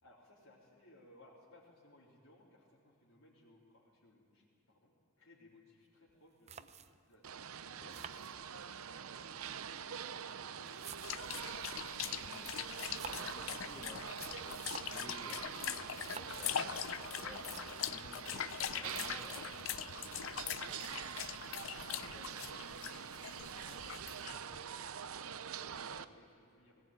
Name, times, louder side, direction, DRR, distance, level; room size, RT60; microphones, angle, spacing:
voice 1, 0.0-7.2 7.6-8.0 8.4-11.9 21.6-26.9, left 1 dB, 80° left, -7 dB, 3.7 m, -63 dB
sound 1, 6.1-6.2 6.5-7.1 7.9-8.9 9.8-11.5 12.7-13.5 14.3-15.1 15.9-16.5 17.1-17.2 17.3-18.0 18.9-19.5, right 6 dB, 30° right, 0.6 m, -52 dB
sound 2, 7.2-26.0, right 8 dB, 85° right, 0.7 m, -45 dB
sound 3, 11.0-24.6, left 10 dB, 65° left, 0.5 m, -42 dB
voice 2, 12.2-20.3, left 1 dB, 15° left, 0 dB, 2.6 m, -55 dB
19.5 x 18.0 x 9.0 m, 2.4 s
head